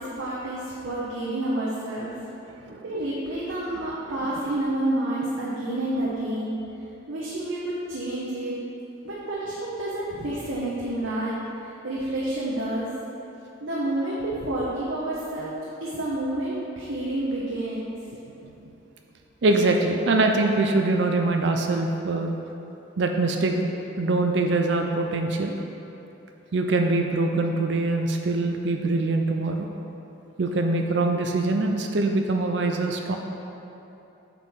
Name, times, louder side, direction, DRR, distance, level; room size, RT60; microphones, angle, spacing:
voice 1, 0.0-2.1 2.8-6.5 7.1-8.6 9.0-12.9 13.6-17.9, right 1 dB, 80° right, -6 dB, 1.1 m, -29 dB
voice 2, 2.5-2.8 18.4-18.5 19.4-22.3 23.0-23.7 24.0-25.6 26.5-29.7 30.4-33.2, right 2 dB, 60° right, 3 dB, 0.5 m, -23 dB
9.0 x 6.0 x 3.7 m, 2.9 s
head